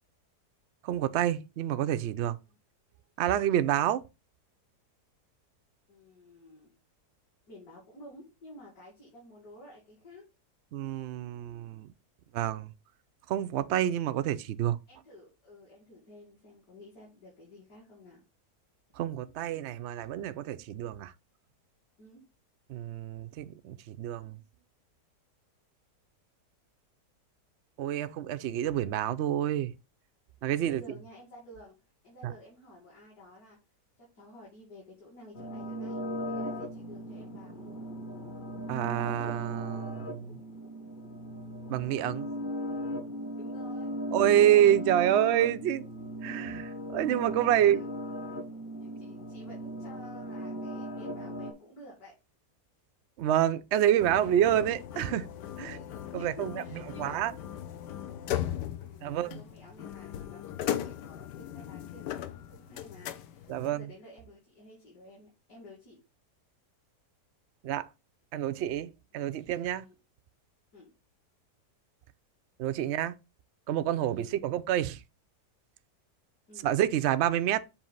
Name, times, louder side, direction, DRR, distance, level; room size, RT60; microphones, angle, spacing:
voice 1, 0.8-2.4 3.2-4.0 10.7-11.9 12.3-12.7 13.3-14.8 19.0-21.1 22.7-24.4 27.8-29.7 30.4-30.8 32.2-32.3 38.7-40.3 41.7-42.3 44.1-47.8 53.2-55.3 55.6-55.8 56.1-56.5 57.0-57.3 59.0-59.4 63.5-63.8 67.6-67.9 68.3-69.8 72.6-73.1 73.7-75.0 76.6-77.6, right 11 dB, 90° right, 0.6 m, -28 dB
voice 2, 5.9-6.8 7.5-10.3 14.9-18.2 22.0-22.2 30.6-33.6 34.0-36.0 36.3-37.7 43.3-43.9 44.2-44.5 46.5-46.8 47.4-47.9 48.8-52.1 53.8-54.3 54.9-55.0 55.6-57.3 58.8-66.0 69.1-69.2 69.8-69.9 70.7-70.9 74.1-74.4 76.5-76.7, left 1 dB, 60° left, 2.7 m, -52 dB
sound 1, 35.3-51.5, equal, 35° left, 1.1 m, -38 dB
sound 2, 54.0-63.7, left 11 dB, 85° left, 1.3 m, -38 dB
7.1 x 2.8 x 5.4 m
omnidirectional pair, 1.8 m